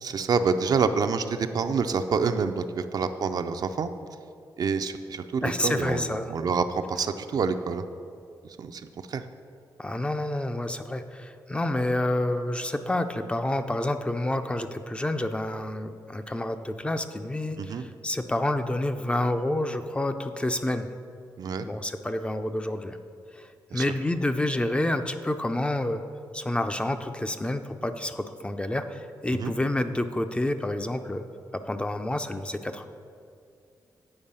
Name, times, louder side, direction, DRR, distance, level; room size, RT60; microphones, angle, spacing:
voice 1, 0.0-3.9 4.6-7.8 8.4-8.8 9.1-9.2 17.6-17.8 21.4-21.7 23.7-23.8 29.3-29.5, right 5 dB, 60° right, 8 dB, 0.4 m, -27 dB
voice 2, 5.4-6.3 9.8-20.9 21.6-23.0 23.3-26.0 26.3-31.2 31.5-32.9, left 1 dB, 15° left, 8 dB, 0.4 m, -29 dB
8.8 x 4.6 x 5.4 m, 2.4 s
cardioid pair, 95°, 7 cm